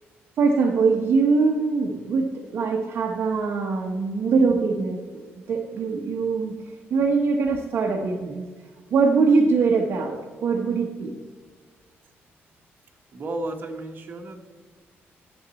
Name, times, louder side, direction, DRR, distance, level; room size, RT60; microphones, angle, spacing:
voice 1, 0.4-6.5 6.9-8.4 8.9-11.1, right 4 dB, 60° right, 1 dB, 1.0 m, -22 dB
voice 2, 13.1-14.4, right 2 dB, 45° right, 2 dB, 1.4 m, -33 dB
12.0 x 7.3 x 4.1 m, 1.5 s
cardioid pair, 135°, 4 cm